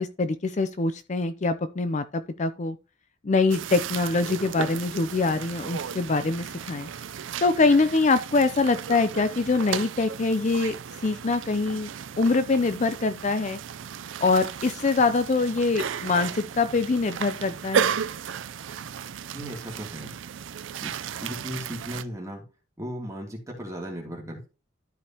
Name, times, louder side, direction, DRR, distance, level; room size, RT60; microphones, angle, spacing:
voice 1, 0.0-2.8 3.2-6.9 7.4-10.7 11.0-11.9 12.2-13.6 14.2-18.0, left 3 dB, 40° left, 0.5 m, -24 dB
sound 1, 3.5-22.0, right 7 dB, 75° right, 0.4 m, -34 dB
voice 2, 19.3-20.1 20.8-20.9 21.2-22.4 22.8-24.5, equal, 15° right, 2.8 m, -36 dB
12.5 x 5.1 x 2.9 m
head